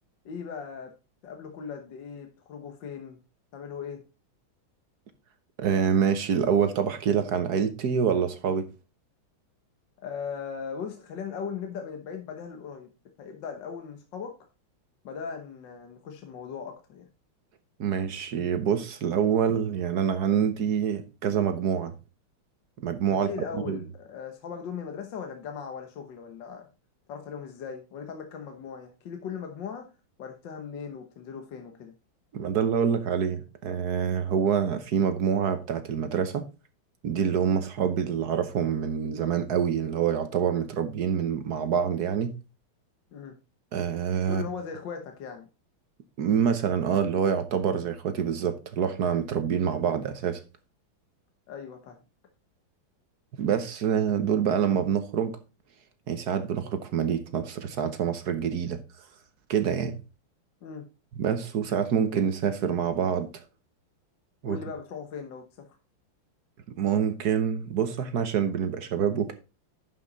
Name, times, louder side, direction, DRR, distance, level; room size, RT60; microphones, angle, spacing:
voice 1, 0.3-0.9 1.2-3.2 3.5-4.0 10.0-12.9 13.2-14.4 15.0-17.1 23.1-26.7 27.1-29.9 30.2-31.9 43.1-43.4 44.2-45.5 51.5-52.0 60.6-60.9 64.5-65.7, left 6 dB, 65° left, 1.7 m, -38 dB
voice 2, 5.6-8.7 17.8-21.9 22.8-23.3 23.7-23.8 32.3-36.5 37.0-42.3 43.7-44.4 46.2-50.4 53.4-55.4 56.1-58.8 59.5-60.0 61.2-63.3 64.4-64.6 66.8-69.3, right 7 dB, 55° right, 1.4 m, -26 dB
11.0 x 5.8 x 4.0 m
omnidirectional pair, 2.2 m